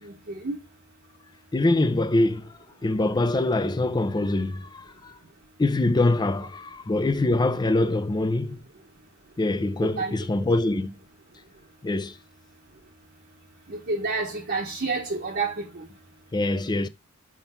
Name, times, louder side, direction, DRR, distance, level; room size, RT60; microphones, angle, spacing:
voice 1, 0.0-0.6 7.8-7.9 9.8-10.2 13.7-15.9, right 3 dB, 50° right, 0.9 m, -30 dB
voice 2, 1.5-2.5 2.8-5.1 5.6-8.6 9.4-10.9 11.8-12.2 16.3-16.9, left 2 dB, 20° left, 0.4 m, -24 dB
5.8 x 3.7 x 5.5 m
head